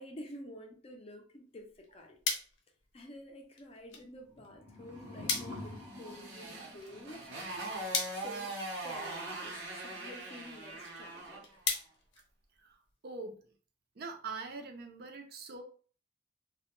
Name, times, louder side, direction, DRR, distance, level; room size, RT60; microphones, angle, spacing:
voice 1, 0.0-2.2 2.9-7.3 8.1-8.6 8.8-11.5, left 1 dB, 30° left, 0.4 m, -49 dB
sound 1, 1.5-13.0, left 5 dB, 85° left, 0.6 m, -42 dB
sound 2, 4.2-7.3, left 2 dB, 15° right, 0.6 m, -47 dB
Motorcycle, 5.4-11.5, right 2 dB, 85° right, 0.8 m, -42 dB
voice 2, 13.0-13.4 14.0-15.6, right 4 dB, 55° right, 0.5 m, -43 dB
2.2 x 2.1 x 2.9 m
head